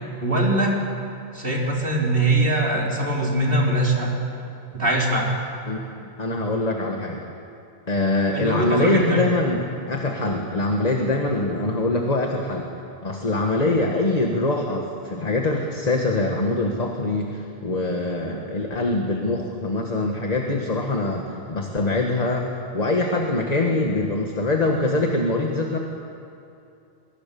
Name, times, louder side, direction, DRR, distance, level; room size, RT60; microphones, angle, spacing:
voice 1, 0.2-0.8 1.3-4.1 4.7-5.3 8.3-9.2, right 1 dB, 60° right, -2 dB, 4.3 m, -22 dB
voice 2, 5.7-7.2 7.9-12.7 13.0-21.2 21.5-22.5 22.7-25.8, left 2 dB, 40° left, 1 dB, 1.7 m, -23 dB
24.0 x 22.0 x 7.0 m, 2.6 s
omnidirectional pair, 1.1 m